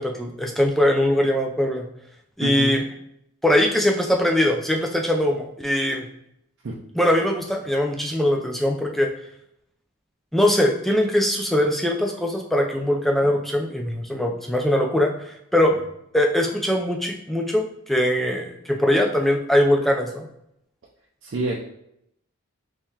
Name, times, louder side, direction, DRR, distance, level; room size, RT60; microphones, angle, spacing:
voice 1, 0.0-1.9 2.4-2.8 3.4-6.1 6.9-9.1 10.3-15.1 15.5-15.8 16.1-20.3, left 1 dB, ahead, 1 dB, 0.3 m, -21 dB
voice 2, 2.4-2.8 6.6-6.7 21.2-21.6, right 1 dB, 60° right, -3 dB, 0.5 m, -27 dB
3.7 x 3.1 x 2.8 m, 0.77 s
head